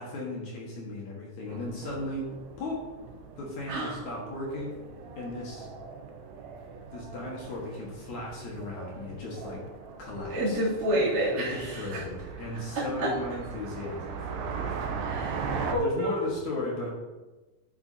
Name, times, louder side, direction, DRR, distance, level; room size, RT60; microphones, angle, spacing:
voice 1, 0.0-2.9 3.4-4.8 5.2-5.7 6.9-9.6 10.0-10.6 11.3-15.1 15.6-16.9, left 2 dB, 55° left, -3 dB, 2.4 m, -36 dB
sound 1, 1.5-15.7, right 5 dB, 80° right, 2.8 m, -39 dB
voice 2, 10.3-11.7 13.0-13.1 15.0-16.3, right 1 dB, 25° right, -10 dB, 2.8 m, -28 dB
12.0 x 8.0 x 2.8 m, 1.2 s
omnidirectional pair, 4.8 m